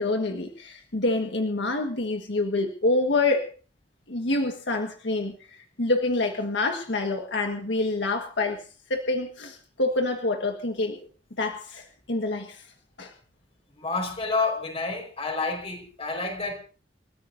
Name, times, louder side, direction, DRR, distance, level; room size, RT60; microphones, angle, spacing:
voice 1, 0.0-3.5 4.1-8.6 8.9-11.0 11.4-12.6 13.0-13.1, left 2 dB, 80° left, 1.6 m, -27 dB
voice 2, 13.7-16.5, left 3 dB, 35° left, 4.9 m, -29 dB
29.0 x 14.0 x 2.7 m
head